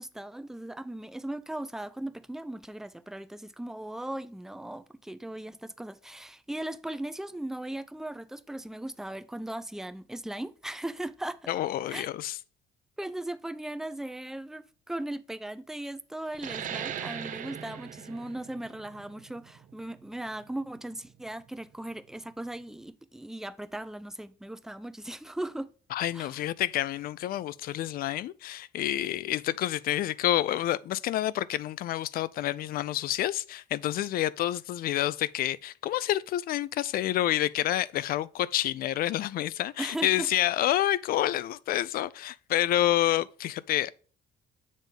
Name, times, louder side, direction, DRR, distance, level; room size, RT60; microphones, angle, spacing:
voice 1, 0.0-11.4 11.9-12.1 13.0-25.7 26.1-26.4 39.8-40.3, right 1 dB, 5° right, 0.4 m, -38 dB
voice 2, 11.5-12.4 25.9-43.9, left 13 dB, 60° left, 0.4 m, -28 dB
sound 1, 16.3-21.5, right 9 dB, 50° right, 0.7 m, -40 dB
7.4 x 3.5 x 5.3 m
cardioid pair, 110°, 17 cm